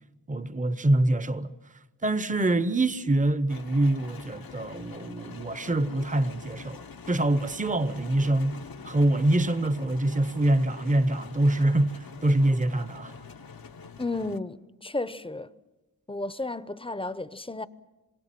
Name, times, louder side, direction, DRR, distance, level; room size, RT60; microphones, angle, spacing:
voice 1, 0.3-1.5 2.0-6.8 7.1-13.1, right 1 dB, 20° right, 0.8 m, -25 dB
sound 1, 3.5-14.4, left 5 dB, 70° left, 1.1 m, -45 dB
voice 2, 14.0-15.5 16.1-17.6, left 2 dB, 15° left, 0.7 m, -33 dB
26.5 x 22.5 x 7.6 m
wide cardioid pair, 80°, 37 cm